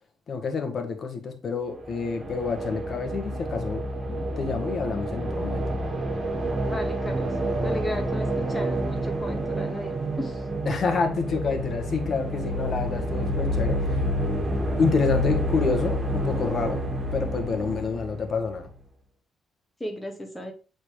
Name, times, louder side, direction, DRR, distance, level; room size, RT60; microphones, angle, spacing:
voice 1, 0.3-5.6 10.6-14.0 14.8-16.8 17.1-18.7, left 5 dB, 50° left, 1.6 m, -28 dB
sound 1, 1.7-18.7, right 1 dB, 40° right, 2.0 m, -29 dB
voice 2, 6.6-7.3 7.6-10.4 19.8-20.5, equal, 10° left, 2.0 m, -35 dB
8.1 x 4.1 x 3.4 m
cardioid pair, 90°, 0 cm